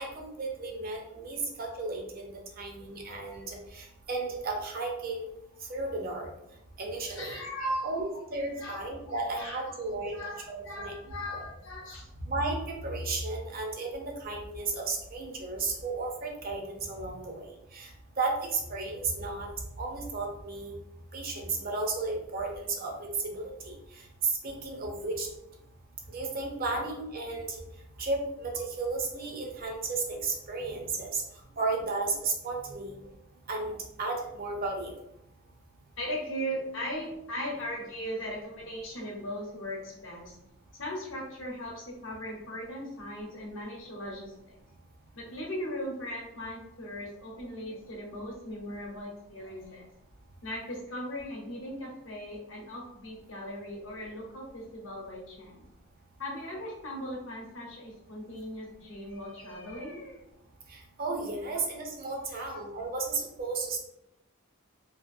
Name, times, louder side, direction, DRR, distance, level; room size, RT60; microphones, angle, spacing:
voice 1, 0.0-5.3 5.6-6.3 6.8-7.5 7.8-10.9 12.2-12.6 12.8-17.9 18.2-19.5 19.8-20.7 21.1-25.3 26.1-27.6 28.0-31.2 31.6-33.0 33.5-34.9 60.7-63.8, right 3 dB, 45° right, 1 dB, 0.5 m, -34 dB
voice 2, 7.1-8.0 8.6-9.6 10.0-12.1 31.5-31.6 36.0-40.4 40.7-44.6 45.2-49.9 50.4-55.7 56.2-60.2, equal, 65° left, -2 dB, 0.8 m, -38 dB
2.7 x 2.4 x 2.4 m, 0.83 s
head